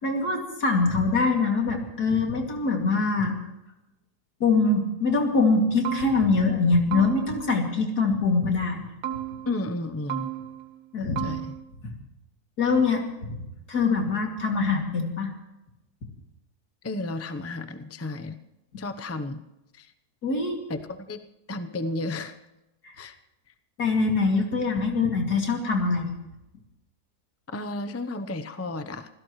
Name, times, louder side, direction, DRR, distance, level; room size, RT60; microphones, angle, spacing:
voice 1, 0.0-3.4 4.4-8.8 10.9-11.3 11.8-12.0 12.6-13.4 13.7-15.3 20.2-20.6 22.8-22.9 23.8-26.1, left 3 dB, 75° left, 1 dB, 3.1 m, -23 dB
sound 1, 5.8-6.5 6.9-7.6 9.0-9.7 10.1-10.8 11.2-11.6, right 11 dB, 65° right, 1.5 m, -34 dB
voice 2, 9.5-10.3 11.2-11.5 16.8-18.4 18.8-19.4 19.7-19.9 20.7-21.2 21.5-22.4 23.0-23.2 27.5-29.1, left 2 dB, 15° left, 9 dB, 0.5 m, -33 dB
26.0 x 16.0 x 3.2 m, 0.94 s
omnidirectional pair, 1.7 m